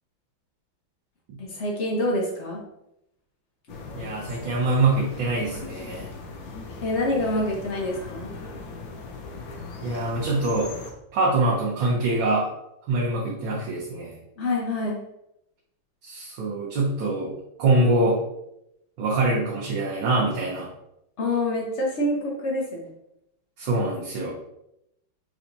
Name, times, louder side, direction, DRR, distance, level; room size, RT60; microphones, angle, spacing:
voice 1, 1.4-2.6 6.8-8.3 14.4-15.0 21.2-22.9, left 1 dB, 50° left, -2 dB, 0.9 m, -26 dB
sound 1, 3.7-10.9, left 3 dB, 75° left, 1.4 m, -39 dB
voice 2, 3.9-6.1 9.8-10.7 11.1-12.5 12.9-14.2 16.0-17.3 17.6-18.2 19.0-20.7 23.6-24.3, right 2 dB, 70° right, -6 dB, 1.7 m, -24 dB
4.6 x 3.9 x 2.7 m, 0.82 s
omnidirectional pair, 2.2 m